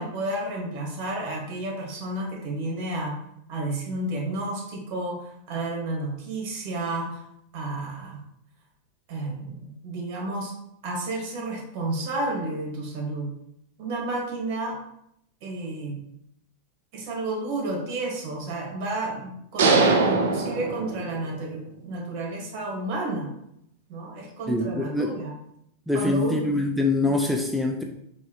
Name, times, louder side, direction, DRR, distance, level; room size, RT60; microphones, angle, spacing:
voice 1, 0.0-3.2 3.5-7.2 7.5-8.2 9.1-10.5 10.8-13.3 13.8-14.8 15.4-16.0 16.9-23.3 23.9-25.3 25.9-26.4, right 2 dB, 55° right, -1 dB, 1.5 m, -31 dB
sound 1, 19.6-21.4, right 3 dB, 75° right, 0.6 m, -22 dB
voice 2, 24.5-25.1 25.9-27.8, left 2 dB, ahead, 1 dB, 0.4 m, -24 dB
4.6 x 2.6 x 2.9 m, 0.75 s
hypercardioid pair, 120°, 0 cm